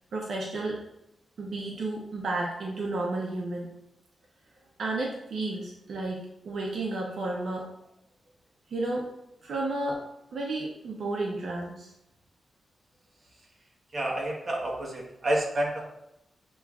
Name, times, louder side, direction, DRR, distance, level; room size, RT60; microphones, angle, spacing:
voice 1, 0.1-0.8 1.4-3.7 4.8-7.7 8.7-9.1 9.4-10.0 10.3-11.9, right 2 dB, 60° right, -2 dB, 0.7 m, -32 dB
voice 2, 13.9-15.9, right 1 dB, 35° right, -2 dB, 1.0 m, -29 dB
7.2 x 3.0 x 2.4 m, 0.84 s
wide cardioid pair, 145°, 0 cm